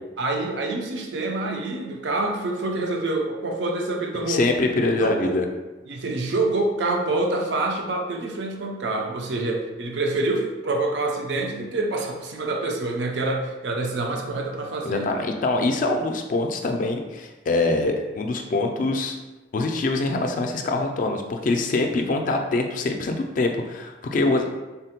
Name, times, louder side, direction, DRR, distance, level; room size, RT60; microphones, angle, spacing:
voice 1, 0.2-5.4 5.9-15.2, right 2 dB, 75° right, 1 dB, 0.5 m, -26 dB
voice 2, 4.3-5.4 14.9-19.2 19.5-24.6, left 2 dB, 50° left, 4 dB, 0.3 m, -24 dB
3.6 x 2.1 x 2.8 m, 1.2 s
head